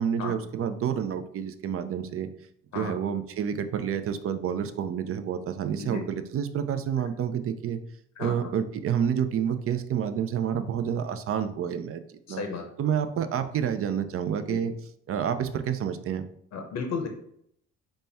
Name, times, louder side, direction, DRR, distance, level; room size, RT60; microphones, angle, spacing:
voice 1, 0.0-2.3 2.7-7.8 8.2-12.0 12.3-12.4 12.8-14.7 15.1-16.2, right 8 dB, 50° right, 10 dB, 0.4 m, -29 dB
voice 2, 8.2-8.5 12.3-12.6 14.5-14.6 16.5-17.1, left 5 dB, 60° left, 4 dB, 0.7 m, -33 dB
4.1 x 2.1 x 3.3 m, 0.70 s
cardioid pair, 90°, 30 cm